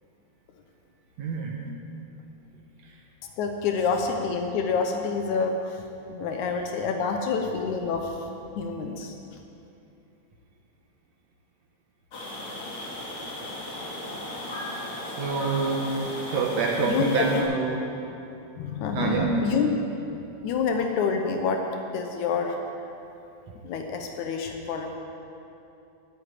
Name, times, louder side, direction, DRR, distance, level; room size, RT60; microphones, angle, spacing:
voice 1, 1.2-1.6 6.5-6.7 15.2-17.8 18.9-19.4, right 3 dB, 65° right, -1 dB, 2.5 m, -27 dB
voice 2, 3.4-5.5 6.1-8.1 8.6-9.1 16.9-17.4 18.6-19.7 20.4-21.6 21.9-22.6 23.6-25.0, left 5 dB, 85° left, 3 dB, 2.3 m, -27 dB
sound 1, 12.1-17.4, left 1 dB, 45° left, 2.9 m, -36 dB
12.0 x 8.8 x 9.9 m, 2.8 s
omnidirectional pair, 3.3 m